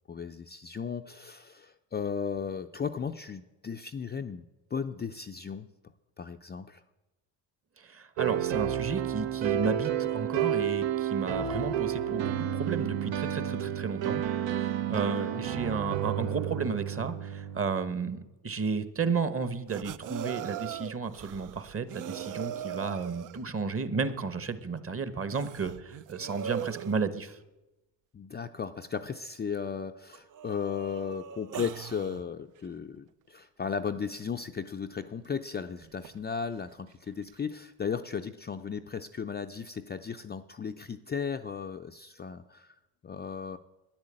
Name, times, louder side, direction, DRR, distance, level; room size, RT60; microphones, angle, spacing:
voice 1, 0.1-4.4 4.7-5.7 6.2-6.8 15.0-15.4 28.1-42.7 43.0-43.6, left 6 dB, 20° left, 5 dB, 0.5 m, -36 dB
voice 2, 7.8-14.2 14.5-27.4, right 5 dB, 30° right, 13 dB, 1.1 m, -33 dB
sound 1, 8.2-18.0, right 10 dB, 70° right, 1.0 m, -31 dB
sound 2, 19.7-23.5 24.1-24.2 24.8-24.9 25.3-27.0 28.9-29.0 29.7-29.8 30.1-32.3 35.3-35.4 35.8-36.2 37.2-37.3, right 10 dB, 45° right, 0.5 m, -40 dB
10.5 x 10.0 x 8.7 m, 1.0 s
cardioid pair, 110°, 46 cm